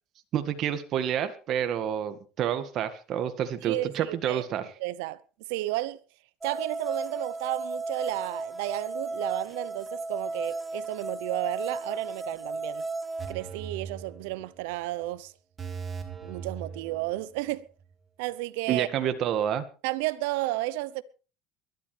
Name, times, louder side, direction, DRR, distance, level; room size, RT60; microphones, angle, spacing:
voice 1, 0.3-4.7 18.7-19.6, right 9 dB, 50° right, 1.8 m, -29 dB
voice 2, 3.6-4.5 4.8-5.2 5.5-6.0 6.4-12.8 13.3-15.3 16.2-17.7 18.2-18.9 19.8-21.0, right 17 dB, 80° right, 0.8 m, -32 dB
sound 1, 6.4-13.3, right 3 dB, 10° right, 1.1 m, -34 dB
sound 2, 13.2-14.7 15.0-15.1 15.6-17.5 17.8-17.9, right 6 dB, 25° right, 3.6 m, -40 dB
23.0 x 12.0 x 3.4 m
supercardioid pair, 110°, 0 cm